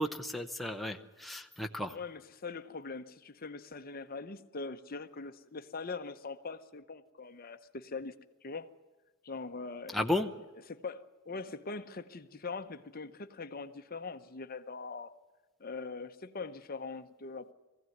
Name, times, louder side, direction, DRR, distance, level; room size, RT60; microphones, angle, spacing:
voice 1, 0.0-2.0 9.9-10.3, left 1 dB, ahead, 3 dB, 0.9 m, -33 dB
voice 2, 1.9-8.1 8.4-8.7 9.2-10.0 10.7-15.1 15.6-17.5, left 4 dB, 45° left, 9 dB, 0.9 m, -42 dB
21.0 x 16.0 x 9.3 m, 1.2 s
head